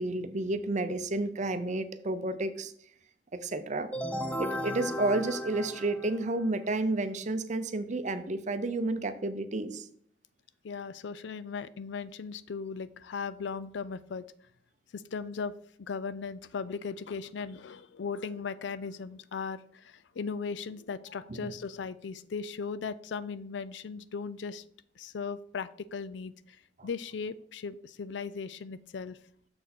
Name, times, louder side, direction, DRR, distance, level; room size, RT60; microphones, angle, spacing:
voice 1, 0.0-2.7 3.3-3.9 4.4-9.9 21.3-21.5 26.8-26.9, right 2 dB, 40° right, 11 dB, 0.6 m, -31 dB
sound 1, 3.9-6.6, equal, 10° left, 0.5 m, -35 dB
voice 2, 10.6-14.2 14.9-15.5 15.8-24.6 25.0-26.6 26.8-29.2, left 5 dB, 75° left, 16 dB, 0.4 m, -37 dB
6.7 x 6.2 x 4.3 m, 0.63 s
head